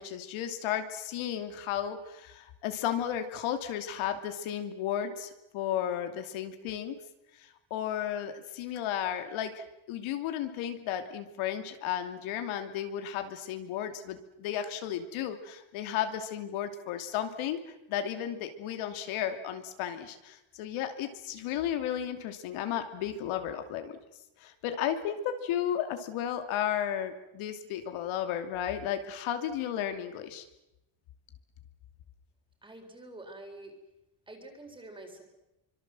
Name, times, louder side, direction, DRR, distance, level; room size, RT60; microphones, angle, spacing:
voice 1, 0.0-7.0 7.4-24.0 24.4-30.4, left 10 dB, 70° left, 7 dB, 2.9 m, -34 dB
voice 2, 32.6-33.7 34.3-35.2, right 2 dB, 10° right, 4 dB, 4.2 m, -47 dB
26.5 x 25.0 x 7.7 m, 0.94 s
cardioid pair, 175°, 49 cm